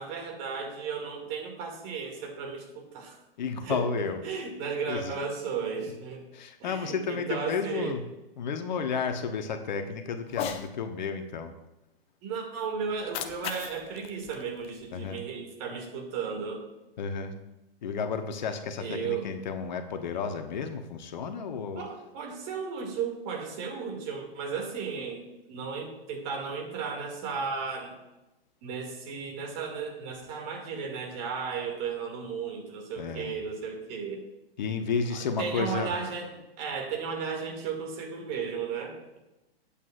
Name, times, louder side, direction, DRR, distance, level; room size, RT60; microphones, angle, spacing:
voice 1, 0.0-3.2 3.6-3.8 4.2-6.2 6.6-7.9 12.2-16.6 18.8-19.3 21.8-28.0 28.6-34.2 35.1-39.2, right 5 dB, 30° right, 2 dB, 2.3 m, -35 dB
voice 2, 3.4-4.2 4.9-5.1 6.3-8.0 8.4-11.5 14.9-15.2 17.0-17.4 17.8-21.8 33.0-33.4 34.6-35.9, left 5 dB, 50° left, 7 dB, 1.1 m, -32 dB
Cat, 10.3-10.7 12.9-15.2, left 8 dB, 20° left, 0.7 m, -38 dB
19.5 x 8.5 x 2.5 m, 0.97 s
figure-of-eight pair, 115°, 30 cm